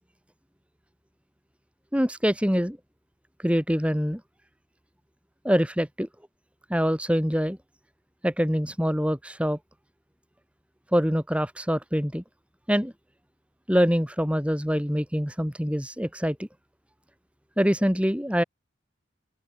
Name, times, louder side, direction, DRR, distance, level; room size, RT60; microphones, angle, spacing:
voice 1, 1.9-2.8 3.4-4.2 5.4-6.1 6.7-7.6 8.2-9.6 10.9-12.2 12.7-12.9 13.7-16.5 17.6-18.4, equal, 5° right, 3.6 m, -24 dB
open air
head